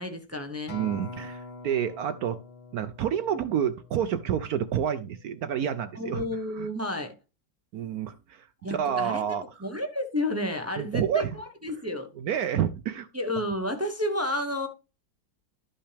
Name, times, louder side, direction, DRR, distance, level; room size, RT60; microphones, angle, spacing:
voice 1, 0.0-0.7 5.9-7.1 8.6-9.4 9.6-11.2 11.6-12.1 13.1-14.7, left 1 dB, 15° right, 0.4 m, -31 dB
Acoustic guitar, 0.7-5.1 5.7-5.9, left 2 dB, 70° left, 2.4 m, -44 dB
voice 2, 0.7-2.4 2.7-6.3 6.5-6.7 7.7-9.4 10.8-11.4 12.2-13.1, right 9 dB, 75° right, 0.8 m, -29 dB
12.5 x 5.6 x 3.4 m
omnidirectional pair, 2.1 m